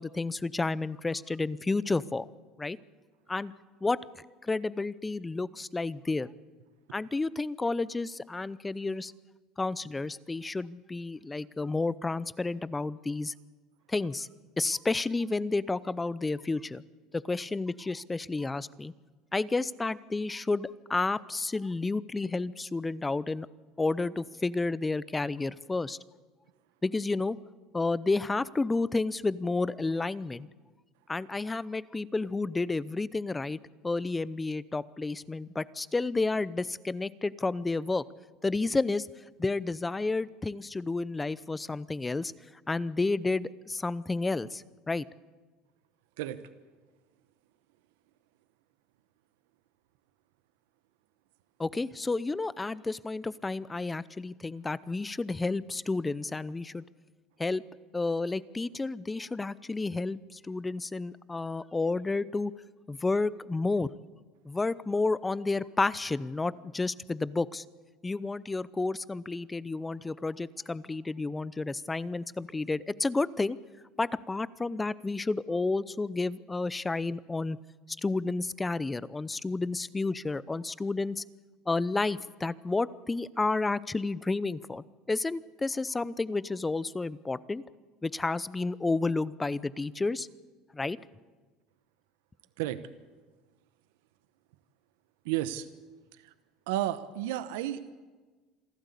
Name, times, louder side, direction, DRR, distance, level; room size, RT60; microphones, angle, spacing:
voice 1, 0.0-2.3 2.6-2.8 3.3-3.5 3.8-4.0 4.4-6.3 6.9-9.1 9.6-13.3 13.9-14.3 14.6-16.8 17.1-18.9 19.3-23.5 23.8-26.0 26.8-27.4 27.7-30.5 31.1-33.6 33.8-38.0 38.4-39.1 39.4-42.3 42.7-45.0 51.6-56.8 57.4-57.6 57.9-62.5 62.9-63.9 64.4-67.6 68.0-73.6 74.0-77.6 78.0-81.2 81.7-87.6 88.0-90.3 90.7-91.0, left 3 dB, 15° left, 19 dB, 0.7 m, -31 dB
voice 2, 95.2-95.7 96.7-97.9, right 13 dB, 85° right, 12 dB, 1.0 m, -32 dB
27.0 x 12.5 x 8.4 m, 1.4 s
supercardioid pair, 100°, 0 cm